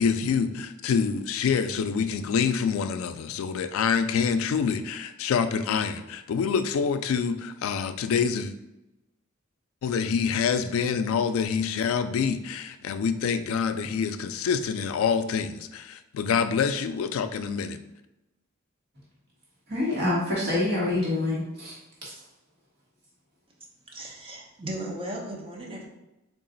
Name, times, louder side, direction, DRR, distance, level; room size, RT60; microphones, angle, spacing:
voice 1, 0.0-8.5 9.8-17.8, left 6 dB, 75° left, 10 dB, 0.3 m, -26 dB
voice 2, 19.7-22.1, left 2 dB, 50° right, -6 dB, 1.3 m, -27 dB
voice 3, 23.9-25.9, right 1 dB, 25° right, -1 dB, 0.7 m, -36 dB
3.8 x 2.4 x 3.8 m, 0.96 s
head